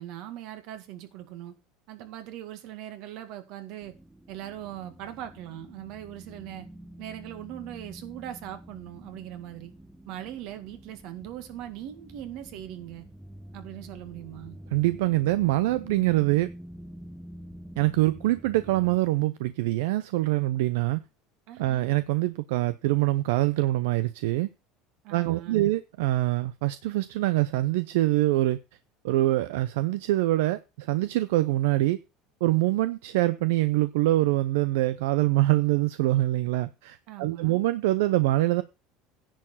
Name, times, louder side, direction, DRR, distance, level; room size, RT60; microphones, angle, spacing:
voice 1, 0.0-1.5 1.9-3.9 4.3-6.7 7.0-9.7 10.1-13.0 13.5-14.6 21.5-21.9 25.0-25.7 37.1-37.6, right 12 dB, 65° right, 1.9 m, -40 dB
sound 1, 3.8-19.0, equal, 5° right, 0.8 m, -47 dB
voice 2, 14.7-16.5 17.8-21.0 21.6-24.5 25.1-28.6 29.0-32.0 32.4-38.6, right 17 dB, 85° right, 0.5 m, -24 dB
10.5 x 4.6 x 7.2 m
supercardioid pair, 110°, 0 cm